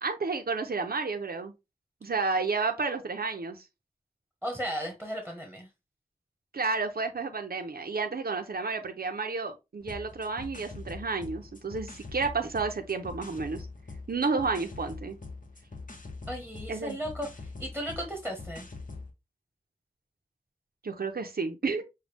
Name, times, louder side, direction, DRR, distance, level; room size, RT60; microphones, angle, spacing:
voice 1, 0.0-1.5 2.0-3.6 6.5-13.7 14.1-15.2 16.7-17.0 20.8-21.8, right 4 dB, 75° right, 0.7 m, -31 dB
voice 2, 4.4-5.7 16.3-18.7, equal, 5° left, 1.3 m, -35 dB
sound 1, 9.8-19.1, left 3 dB, 60° left, 1.1 m, -43 dB
6.5 x 2.3 x 3.4 m
wide cardioid pair, 60°, 16 cm